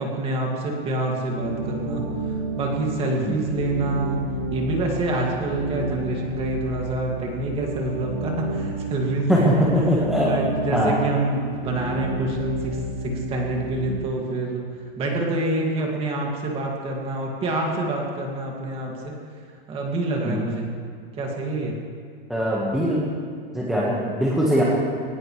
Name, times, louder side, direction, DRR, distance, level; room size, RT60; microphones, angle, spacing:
voice 1, 0.0-2.0 2.6-4.2 4.5-9.7 10.0-14.6 15.0-19.1 19.7-20.7 21.2-21.8, right 2 dB, 20° right, -1 dB, 2.3 m, -27 dB
sound 1, 1.3-13.9, right 1 dB, 40° right, 3.7 m, -31 dB
voice 2, 9.3-10.3 10.7-11.0 20.2-20.4 22.3-23.0 23.5-24.6, equal, ahead, -6 dB, 1.5 m, -21 dB
21.0 x 18.5 x 3.3 m, 2.1 s
supercardioid pair, 165°, 30 cm